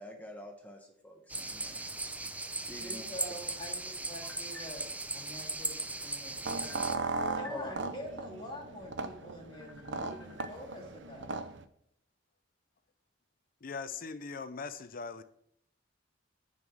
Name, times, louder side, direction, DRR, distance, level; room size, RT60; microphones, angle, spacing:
voice 1, 0.0-1.8 2.7-3.0 4.2-4.6 6.6-7.7 9.5-10.5, left 1 dB, 10° left, 1.1 m, -47 dB
sound 1, 1.3-7.0, right 2 dB, 10° right, 0.5 m, -38 dB
voice 2, 2.8-4.8 5.1-6.7 7.3-11.4, equal, 25° left, 2.6 m, -46 dB
sound 2, 6.4-11.6, right 3 dB, 70° right, 0.7 m, -37 dB
voice 3, 13.6-15.2, left 4 dB, 50° left, 0.6 m, -40 dB
9.5 x 5.5 x 6.2 m
head